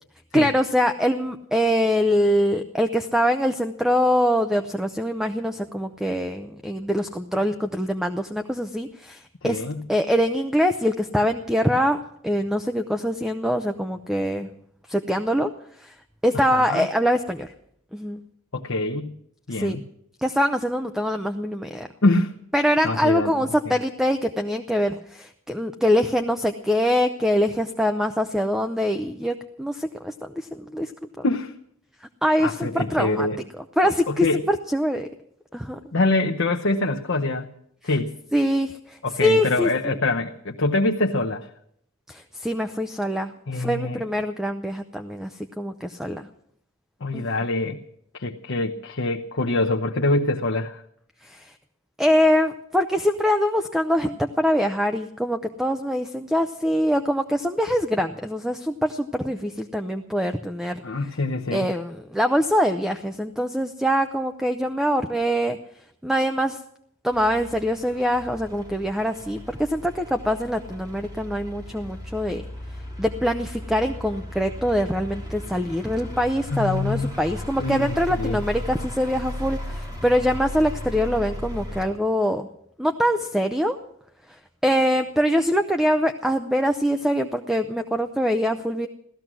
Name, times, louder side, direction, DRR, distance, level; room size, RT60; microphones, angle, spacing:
voice 1, 0.3-9.6 9.9-12.0 12.2-14.5 14.9-15.5 15.8-15.9 16.2-17.5 17.9-18.2 19.5-19.8 20.2-21.9 22.5-30.9 31.2-31.3 32.2-33.3 33.8-35.1 35.5-35.8 38.3-39.7 42.1-46.3 47.1-47.3 51.2-51.5 52.0-60.8 61.5-65.6 66.0-66.6 67.0-72.4 73.0-82.5 82.8-83.8 84.3-88.9, equal, ahead, 6 dB, 0.6 m, -24 dB
voice 2, 9.4-9.8 16.3-16.9 18.5-19.2 19.5-19.8 22.0-22.3 22.8-23.3 23.7-23.8 31.2-31.5 32.4-33.4 34.1-34.4 35.9-37.5 37.8-38.2 39.0-41.5 43.5-44.0 47.0-47.8 48.1-50.8 60.8-61.7 76.5-77.1 77.6-78.4, left 2 dB, 65° left, 2 dB, 0.9 m, -24 dB
sound 1, 67.1-81.8, left 1 dB, 20° right, 3.3 m, -36 dB
16.5 x 14.0 x 6.1 m, 0.70 s
head